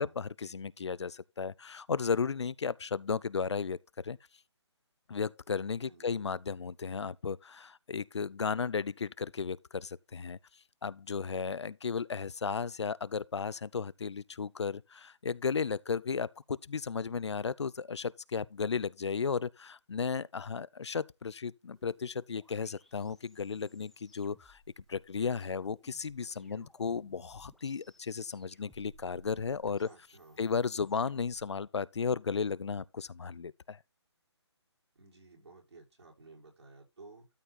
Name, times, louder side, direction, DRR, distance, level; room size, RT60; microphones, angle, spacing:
voice 1, 0.0-4.2 5.1-10.4 10.8-24.6 24.9-29.9 30.4-33.8, left 5 dB, 70° left, 0.5 m, -34 dB
voice 2, 5.9-6.3 26.3-26.7 29.8-30.4 35.0-37.3, right 3 dB, 65° right, 5.4 m, -55 dB
sound 1, 21.8-31.5, equal, ahead, 0.9 m, -62 dB
13.0 x 4.4 x 4.0 m
figure-of-eight pair, 145°, 15 cm